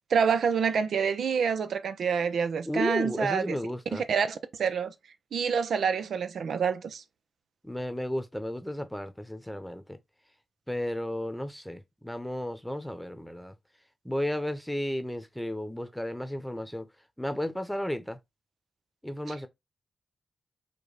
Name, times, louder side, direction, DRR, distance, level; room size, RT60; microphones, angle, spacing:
voice 1, 0.1-3.6 3.9-4.3 4.6-4.9 5.3-7.0, right 6 dB, 80° right, 0.5 m, -27 dB
voice 2, 2.6-4.0 7.6-10.0 10.7-13.5 14.0-16.9 17.2-18.2 19.0-19.5, left 1 dB, 5° left, 0.9 m, -33 dB
5.2 x 2.2 x 3.9 m
cardioid pair, 65°, 0 cm